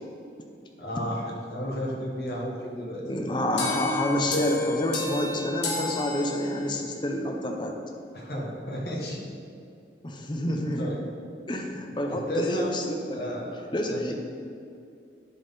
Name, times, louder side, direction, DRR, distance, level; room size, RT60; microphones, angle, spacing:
voice 1, 0.8-3.0 8.1-9.2 10.8-11.0 12.1-12.7 13.1-13.6 13.8-14.1, equal, 60° left, -3 dB, 1.4 m, -32 dB
voice 2, 3.0-7.8 10.0-10.9 11.5-13.3 13.7-14.1, left 1 dB, 25° left, 3 dB, 0.6 m, -28 dB
sound 1, 3.6-6.9, left 2 dB, 85° left, 1.1 m, -31 dB
10.5 x 4.2 x 3.7 m, 2.5 s
head